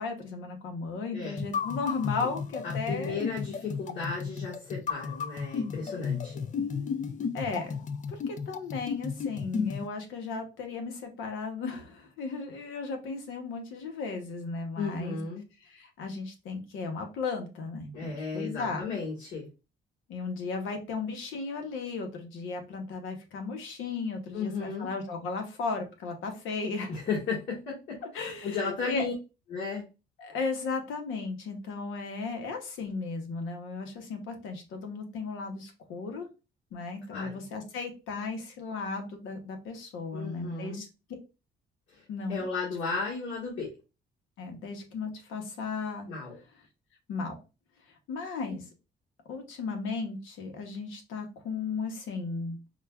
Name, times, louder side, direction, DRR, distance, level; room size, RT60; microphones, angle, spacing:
voice 1, 0.0-3.2 7.3-7.8 8.1-15.2 15.6-18.8 20.1-26.9 28.1-29.1 30.2-36.3 36.7-40.9 42.1-42.5 44.4-46.1 47.1-47.3 48.1-48.6 49.3-52.6, left 4 dB, 85° left, 4 dB, 0.9 m, -35 dB
sound 1, 1.4-9.9, left 6 dB, 40° left, 0.4 m, -33 dB
voice 2, 2.6-6.4 14.8-15.4 17.9-19.5 24.3-24.9 26.9-29.1 29.5-29.8 37.1-37.4 40.1-40.8 41.9-43.7 46.1-46.4, left 4 dB, 70° left, -5 dB, 1.4 m, -34 dB
4.8 x 2.3 x 2.2 m, 0.29 s
cardioid pair, 90°, 20 cm